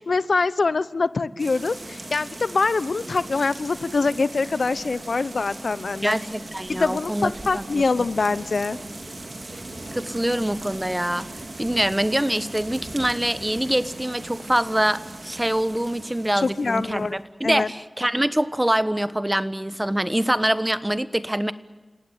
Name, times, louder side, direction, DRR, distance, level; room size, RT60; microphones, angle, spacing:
voice 1, 0.0-6.2 6.7-8.8 16.4-17.2 17.4-17.7, left 4 dB, 85° left, 17 dB, 0.8 m, -24 dB
sound 1, 1.4-17.2, right 2 dB, 60° right, 4.6 m, -39 dB
voice 2, 6.0-7.8 9.9-11.3 11.6-21.5, right 1 dB, 15° right, 14 dB, 1.2 m, -24 dB
29.5 x 17.5 x 9.4 m, 1.2 s
wide cardioid pair, 65°, 0 cm